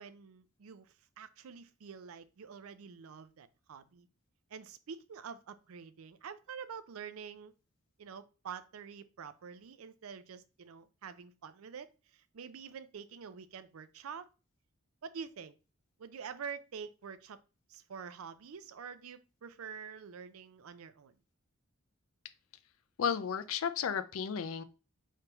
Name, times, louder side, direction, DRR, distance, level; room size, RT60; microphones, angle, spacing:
voice 1, 0.0-4.1 4.5-7.5 8.0-14.3 15.0-15.6 16.0-17.4 17.7-21.1, right 6 dB, 85° right, 0.4 m, -47 dB
voice 2, 23.0-24.6, left 7 dB, 75° left, 0.4 m, -33 dB
4.6 x 3.3 x 2.9 m
head